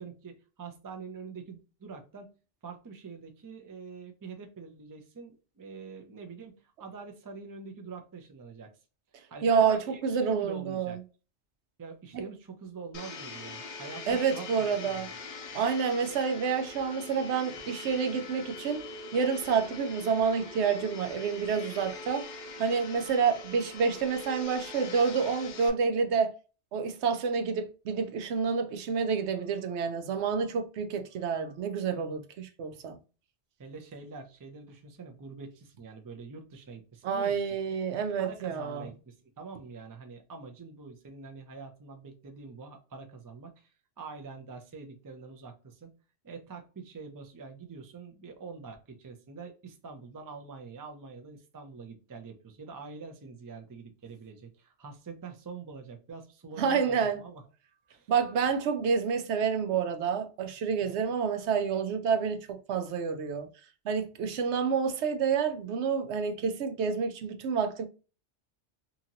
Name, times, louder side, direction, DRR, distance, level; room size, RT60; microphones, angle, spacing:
voice 1, 0.0-2.3 2.6-8.7 9.3-11.0 11.8-15.0 33.6-37.4 38.2-45.9 46.2-57.4 57.9-58.1 60.8-61.0, right 4 dB, 30° right, 0.4 m, -45 dB
voice 2, 9.4-9.8 10.0-11.0 14.1-15.1 15.5-22.3 22.6-26.3 26.7-33.0 37.0-38.9 56.6-57.2 58.1-63.5 63.8-67.9, right 6 dB, 75° right, 0.9 m, -28 dB
Domestic sounds home sounds, 12.9-25.7, left 3 dB, 50° left, 0.6 m, -43 dB
2.9 x 2.7 x 2.5 m
omnidirectional pair, 1.2 m